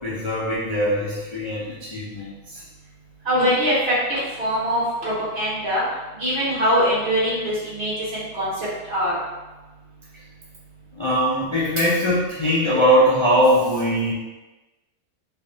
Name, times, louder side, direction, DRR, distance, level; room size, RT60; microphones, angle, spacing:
voice 1, 0.0-2.6 11.0-14.1, equal, 35° left, -8 dB, 0.4 m, -21 dB
voice 2, 3.2-3.7 4.1-5.8 6.2-9.1, equal, 50° right, -8 dB, 1.5 m, -23 dB
3.4 x 3.3 x 2.7 m, 1.1 s
omnidirectional pair, 1.4 m